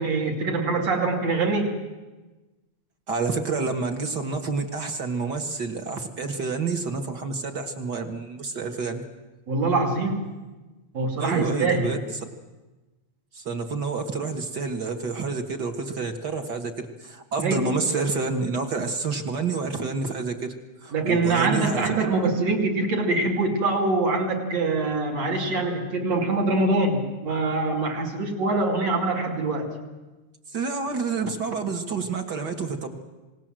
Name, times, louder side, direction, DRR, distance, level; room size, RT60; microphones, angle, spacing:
voice 1, 0.0-1.7 9.5-10.3 10.9-11.9 17.4-17.6 20.9-29.7, right 3 dB, 60° right, 2 dB, 3.9 m, -24 dB
voice 2, 3.1-9.0 11.2-12.0 13.3-20.5 20.8-22.1 30.5-32.9, right 4 dB, 40° right, 5 dB, 1.8 m, -28 dB
27.5 x 19.0 x 7.6 m, 1.2 s
omnidirectional pair, 3.5 m